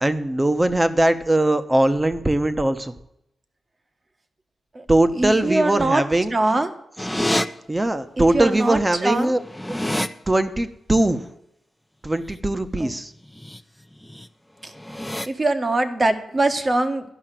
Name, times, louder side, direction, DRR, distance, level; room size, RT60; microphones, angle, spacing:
voice 1, 0.0-2.9 4.9-6.6 7.7-9.4 9.7-9.8 10.3-11.3 12.0-13.1, right 1 dB, 20° right, 10 dB, 1.1 m, -21 dB
voice 2, 5.2-6.0 6.3-6.7 8.3-9.3 12.8-12.9 15.3-17.0, right 2 dB, 35° right, 8 dB, 1.5 m, -22 dB
sound 1, 7.0-7.5 8.6-8.7 9.0-10.1 13.3-13.6 14.0-14.3 14.7-15.3, left 1 dB, 5° left, 0.7 m, -27 dB
12.0 x 5.7 x 9.0 m, 0.78 s
cardioid pair, 65°, 0 cm